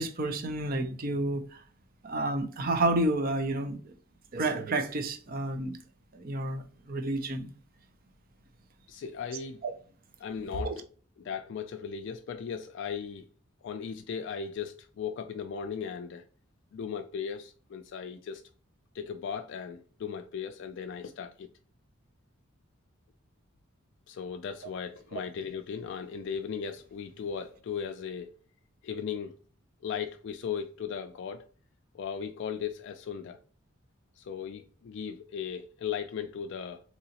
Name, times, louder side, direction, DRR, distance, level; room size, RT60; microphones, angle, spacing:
voice 1, 0.0-1.6 2.0-3.8 4.3-5.8 6.1-7.5 9.6-9.7 10.5-10.7 25.1-25.2, right 2 dB, 45° right, 0.6 m, -30 dB
voice 2, 8.9-9.6 10.2-10.8 11.2-13.2 13.6-16.2 16.7-18.4 18.9-21.5 24.1-28.3 28.8-29.3 29.8-31.5 31.9-33.4 34.2-36.8, left 7 dB, 60° left, 0.3 m, -37 dB
3.8 x 3.0 x 2.8 m
head